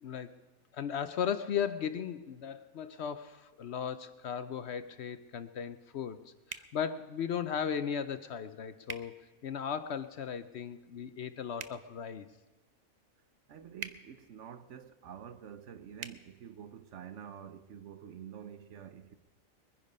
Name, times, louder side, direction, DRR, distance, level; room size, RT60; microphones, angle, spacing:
voice 1, 0.0-0.3 0.7-6.2 6.5-9.2 9.4-12.3, left 7 dB, 60° left, 0.8 m, -36 dB
sound 1, 6.5-6.7 8.8-9.0 11.5-11.8 13.8-14.0 16.0-16.2, right 6 dB, 45° right, 0.6 m, -41 dB
voice 2, 13.5-19.1, right 8 dB, 65° right, 1.0 m, -48 dB
22.5 x 10.0 x 5.3 m
omnidirectional pair, 1.4 m